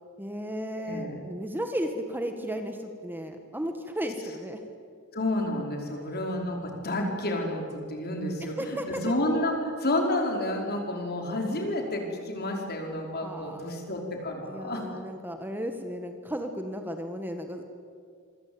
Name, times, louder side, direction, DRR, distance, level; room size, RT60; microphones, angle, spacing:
voice 1, 0.2-4.6 8.4-9.0 13.2-13.6 14.4-17.6, equal, 10° right, 5 dB, 1.7 m, -34 dB
voice 2, 0.8-1.2 5.1-14.8, left 1 dB, 50° left, 2 dB, 5.0 m, -30 dB
26.5 x 24.0 x 8.8 m, 2.2 s
head